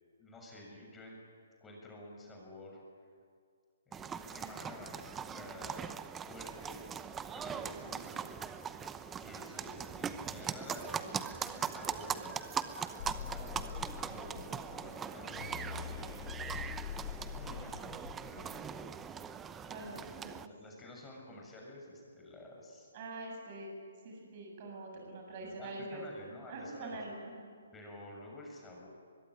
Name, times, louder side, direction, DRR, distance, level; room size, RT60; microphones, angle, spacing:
voice 1, 0.2-1.2 1.6-2.8 3.9-5.9 6.3-6.9 7.3-8.3 9.1-12.3 13.0-16.4 17.1-18.8 20.4-22.9 25.0-27.0 27.7-28.9, left 1 dB, 10° left, -1 dB, 7.0 m, -51 dB
sound 1, 3.9-20.5, right 7 dB, 15° right, 0.8 m, -41 dB
sound 2, 13.0-19.1, left 9 dB, 55° left, 1.2 m, -44 dB
voice 2, 19.7-20.4 22.9-23.8 24.0-27.5, right 2 dB, 40° right, 0 dB, 7.5 m, -44 dB
24.5 x 22.5 x 10.0 m, 2.2 s
hypercardioid pair, 145°, 0 cm